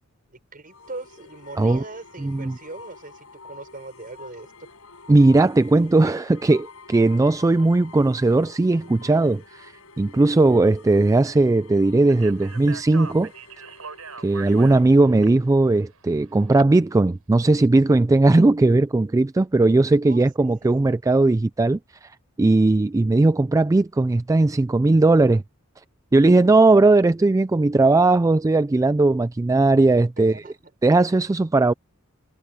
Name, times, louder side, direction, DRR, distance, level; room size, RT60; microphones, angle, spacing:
voice 1, 0.3-4.7 20.0-20.5 30.2-30.6, right 2 dB, 40° right, 6.4 m, -40 dB
sound 1, 0.7-14.9, left 4 dB, 80° left, 5.3 m, -47 dB
voice 2, 2.2-2.6 5.1-13.3 14.2-22.1 22.4-25.4 26.1-30.4 30.8-31.7, right 2 dB, 15° right, 0.3 m, -18 dB
Speech, 12.1-16.6, right 5 dB, 85° right, 5.4 m, -40 dB
head